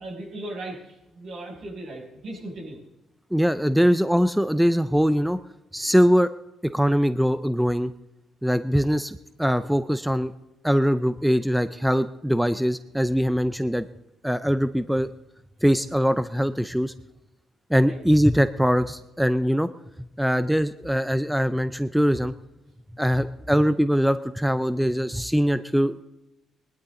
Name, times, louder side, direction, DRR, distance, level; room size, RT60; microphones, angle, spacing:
voice 1, 0.0-2.8 14.7-14.8 17.8-18.0 23.4-23.6, right 1 dB, 65° right, -1 dB, 6.2 m, -38 dB
voice 2, 3.3-5.4 5.7-6.3 6.6-7.9 8.4-10.3 10.6-13.9 14.2-15.1 15.6-16.9 17.7-19.7 20.2-22.3 23.0-26.0, equal, ahead, 12 dB, 0.5 m, -22 dB
20.0 x 11.5 x 3.8 m, 0.95 s
cardioid pair, 90°, 0 cm